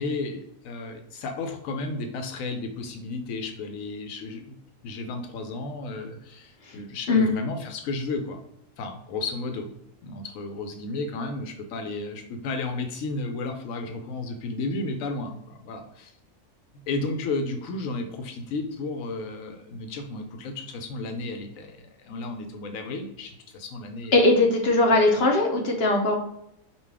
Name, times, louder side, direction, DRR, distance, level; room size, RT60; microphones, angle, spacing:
voice 1, 0.0-4.6 4.8-8.4 8.8-9.7 10.0-16.1 16.9-24.2 24.9-25.1, left 3 dB, 85° left, 5 dB, 1.0 m, -33 dB
voice 2, 24.1-26.2, left 2 dB, 55° left, 2 dB, 1.0 m, -20 dB
5.3 x 2.4 x 3.3 m, 0.79 s
omnidirectional pair, 1.4 m